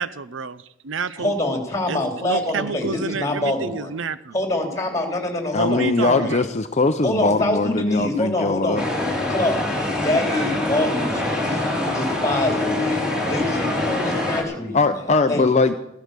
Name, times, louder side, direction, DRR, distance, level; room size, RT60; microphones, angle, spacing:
voice 1, 0.0-1.3 1.9-4.3 5.6-6.5, right 4 dB, 70° right, 15 dB, 0.7 m, -29 dB
voice 2, 1.2-3.9 4.3-6.5 7.0-8.8 9.3-9.6 10.0-15.0 15.3-15.4, left 1 dB, 15° left, 3 dB, 3.3 m, -25 dB
voice 3, 5.5-8.8 14.7-15.8, left 3 dB, 35° left, 7 dB, 0.6 m, -20 dB
sound 1, 8.8-14.4, left 2 dB, 5° right, 3.5 m, -24 dB
16.0 x 11.5 x 6.8 m, 0.86 s
head